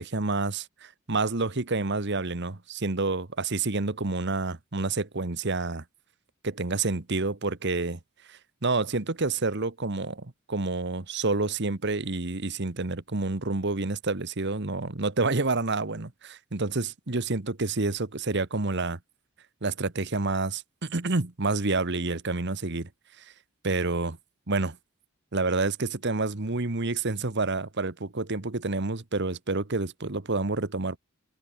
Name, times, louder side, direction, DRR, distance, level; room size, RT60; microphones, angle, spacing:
voice 1, 0.0-5.8 6.4-8.0 8.3-19.0 19.6-22.9 23.2-23.3 23.6-24.2 24.5-24.8 25.3-31.0, right 3 dB, 55° right, 1.4 m, -28 dB
head